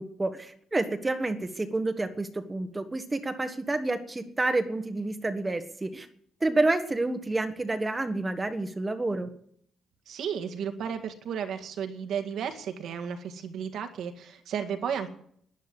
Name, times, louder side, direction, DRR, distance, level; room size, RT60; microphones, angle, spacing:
voice 1, 0.0-6.1 6.4-9.3, right 2 dB, 20° right, 8 dB, 1.4 m, -29 dB
voice 2, 10.1-15.1, right 7 dB, 75° right, 6 dB, 2.0 m, -33 dB
11.5 x 10.5 x 9.8 m, 0.66 s
cardioid pair, 90°, 0 cm